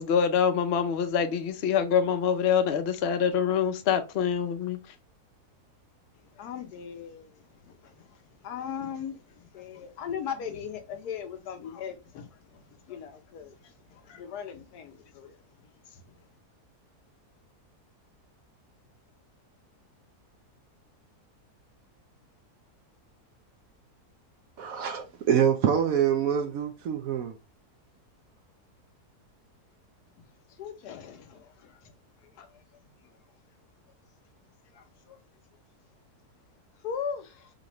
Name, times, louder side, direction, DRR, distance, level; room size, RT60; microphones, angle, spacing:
voice 1, 0.0-4.8, left 7 dB, 60° left, 0.7 m, -25 dB
voice 2, 6.4-8.1 8.4-15.4 15.9-16.0 30.6-31.9 32.2-32.5 34.7-35.2 36.8-37.5, left 7 dB, 80° left, 1.2 m, -39 dB
voice 3, 24.6-27.3, right 8 dB, 70° right, 0.9 m, -25 dB
5.0 x 2.5 x 2.9 m
omnidirectional pair, 1.7 m